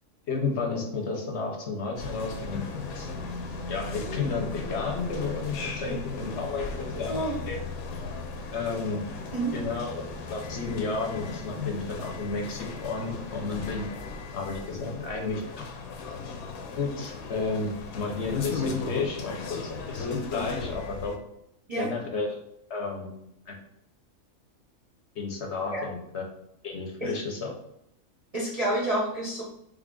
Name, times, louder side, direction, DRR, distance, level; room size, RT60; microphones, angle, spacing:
voice 1, 0.3-2.6 2.9-3.1 3.7-7.2 7.5-7.6 8.5-9.0 9.5-13.9 14.3-15.6 16.8-21.1 21.8-22.4 22.7-23.1 23.5-23.6 25.2-26.3 26.6-27.5, left 4 dB, 60° left, 0 dB, 0.9 m, -32 dB
sound 1, 2.0-21.2, left 4 dB, 90° left, 1.1 m, -36 dB
voice 2, 28.3-29.4, right 1 dB, 45° right, -4 dB, 0.4 m, -28 dB
3.4 x 2.4 x 3.6 m, 0.77 s
omnidirectional pair, 1.5 m